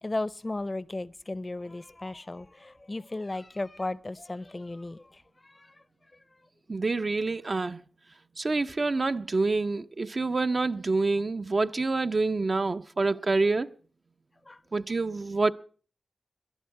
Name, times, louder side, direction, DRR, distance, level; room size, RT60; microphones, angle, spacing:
voice 1, 0.0-5.8 6.1-6.4 14.4-14.6, left 2 dB, 35° left, 0.6 m, -36 dB
voice 2, 6.7-7.8 8.4-13.7 14.7-15.5, right 3 dB, 55° right, 0.6 m, -27 dB
19.0 x 11.0 x 4.7 m
cardioid pair, 45°, 0 cm